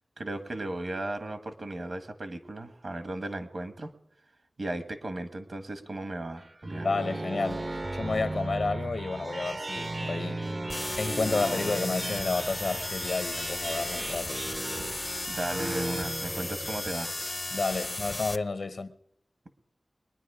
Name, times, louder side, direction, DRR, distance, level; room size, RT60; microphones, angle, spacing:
voice 1, 0.2-3.9 4.6-6.9 15.3-17.1, right 1 dB, 65° right, 1.5 m, -36 dB
sound 1, 6.4-17.2, right 2 dB, 40° right, 0.6 m, -36 dB
voice 2, 6.8-7.6 7.9-10.4 11.0-14.4 17.5-18.9, left 3 dB, 80° left, 0.8 m, -31 dB
sound 2, 10.7-18.4, left 2 dB, 30° left, 0.5 m, -35 dB
22.5 x 10.0 x 4.9 m
wide cardioid pair, 90°, 0 cm